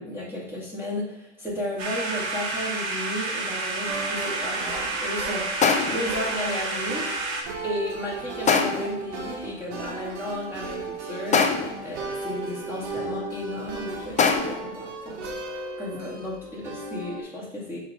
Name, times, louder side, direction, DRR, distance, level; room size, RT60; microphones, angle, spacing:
voice 1, 0.0-7.1 7.6-11.5 11.8-15.3 15.8-17.8, left 1 dB, 5° right, -8 dB, 2.6 m, -34 dB
sound 1, 1.8-7.4, right 3 dB, 50° right, 2.1 m, -30 dB
sound 2, 3.3-3.4 5.6-6.2 8.5-9.0 11.3-11.9 14.2-14.8, left 5 dB, 20° left, 0.7 m, -23 dB
sound 3, 3.8-17.2, right 3 dB, 70° right, 1.6 m, -36 dB
7.1 x 3.7 x 5.2 m, 0.83 s
hypercardioid pair, 110°, 35 cm